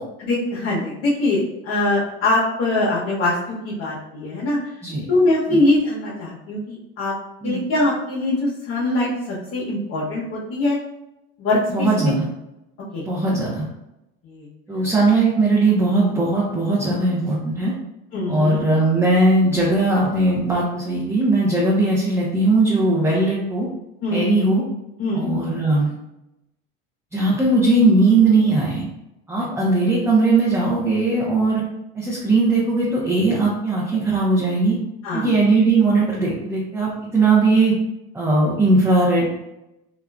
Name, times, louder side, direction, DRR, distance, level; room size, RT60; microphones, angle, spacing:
voice 1, 0.2-4.6 5.1-7.1 7.4-10.8 11.4-12.1 12.9-13.0 14.2-14.5 18.1-18.6 24.0-24.3 25.0-25.3 31.1-31.2 35.0-35.3, left 2 dB, 50° left, -7 dB, 0.9 m, -22 dB
voice 2, 11.7-12.3 13.0-13.7 14.7-17.7 18.3-23.7 24.1-24.6 25.1-26.0 27.1-28.8 29.3-31.6 31.9-34.8 35.1-37.7 38.1-39.3, right 2 dB, 10° right, -6 dB, 0.7 m, -19 dB
3.6 x 2.3 x 2.3 m, 0.91 s
supercardioid pair, 95°, 30 cm